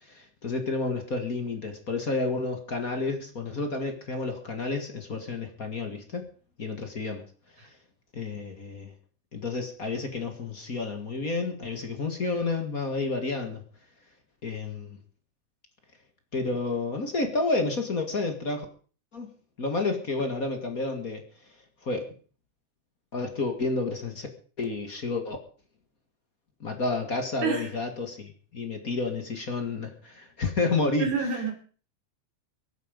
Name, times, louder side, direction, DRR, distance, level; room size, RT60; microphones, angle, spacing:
voice 1, 0.1-6.3 6.6-7.2 8.1-8.9 9.3-13.6 14.4-15.0 16.3-18.7 19.1-19.3 19.6-21.2 21.8-22.1 23.1-24.3 24.6-25.4 26.6-31.1, left 3 dB, 35° left, 5 dB, 1.8 m, -30 dB
voice 2, 27.4-27.7 31.0-31.5, right 5 dB, 65° right, 2 dB, 5.1 m, -28 dB
23.5 x 9.3 x 5.2 m, 0.41 s
omnidirectional pair, 3.7 m